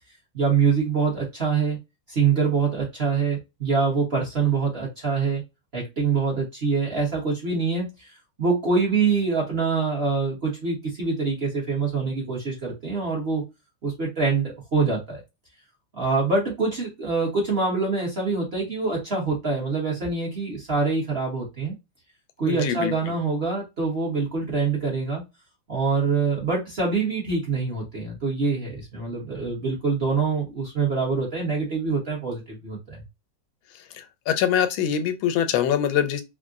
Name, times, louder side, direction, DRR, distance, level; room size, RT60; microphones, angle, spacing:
voice 1, 0.3-1.8 2.1-5.4 5.7-8.1 8.4-13.4 13.8-15.2 16.0-21.7 22.4-25.2 25.7-33.0, right 4 dB, 40° right, 1.0 m, -25 dB
voice 2, 22.4-22.9 34.0-36.2, left 9 dB, 85° left, 1.4 m, -23 dB
3.6 x 2.1 x 2.4 m
omnidirectional pair, 2.1 m